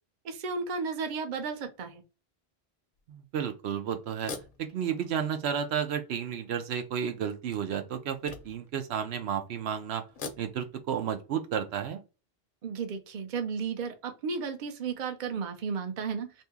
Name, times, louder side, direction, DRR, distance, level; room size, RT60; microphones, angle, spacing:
voice 1, 0.2-2.0 12.6-16.4, right 5 dB, 55° right, 0.7 m, -34 dB
sound 1, 3.0-3.1 4.1-5.5 6.1-6.2 7.3-8.8 10.0-10.9, left 4 dB, 60° left, 0.7 m, -44 dB
voice 2, 3.1-4.3 4.6-10.0 10.4-12.0, right 8 dB, 80° right, 0.9 m, -32 dB
2.7 x 2.6 x 3.4 m
omnidirectional pair, 1.1 m